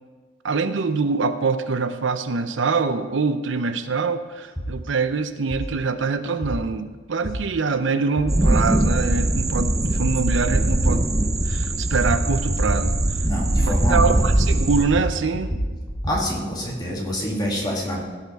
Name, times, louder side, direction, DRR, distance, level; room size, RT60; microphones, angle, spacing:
voice 1, 0.4-11.1 11.4-13.0 13.6-15.5, right 4 dB, 80° right, 10 dB, 0.6 m, -24 dB
sound 1, 4.6-4.7 5.5-5.6 6.4-6.5 7.2-7.3 8.2-8.3 9.0-9.1 9.9-10.0 10.7-10.8 11.5-11.6 11.9-12.2 12.5-12.8 13.0-13.4 13.6-14.5 14.8-16.2, equal, 5° right, 2.6 m, -28 dB
sound 2, 8.3-14.9, right 1 dB, 20° right, 0.5 m, -21 dB
voice 2, 13.3-14.2 16.0-18.0, equal, 20° left, -3 dB, 2.3 m, -27 dB
16.0 x 5.8 x 4.6 m, 1.4 s
head